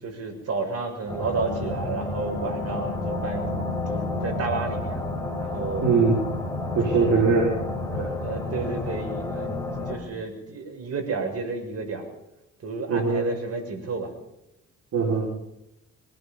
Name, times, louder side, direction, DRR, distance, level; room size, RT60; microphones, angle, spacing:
voice 1, 0.0-3.6 3.9-5.0 5.4-5.9 6.6-7.2 8.2-9.6 9.9-12.1 12.6-14.1, right 4 dB, 55° right, 3 dB, 7.3 m, -31 dB
sound 1, 1.1-10.0, left 2 dB, 10° left, 5.3 m, -30 dB
voice 2, 5.8-6.2 6.7-7.6 7.9-8.1 12.9-13.3 14.9-15.3, right 4 dB, 70° right, -2 dB, 5.7 m, -21 dB
23.5 x 20.0 x 5.6 m, 0.87 s
cardioid pair, 90°, 30 cm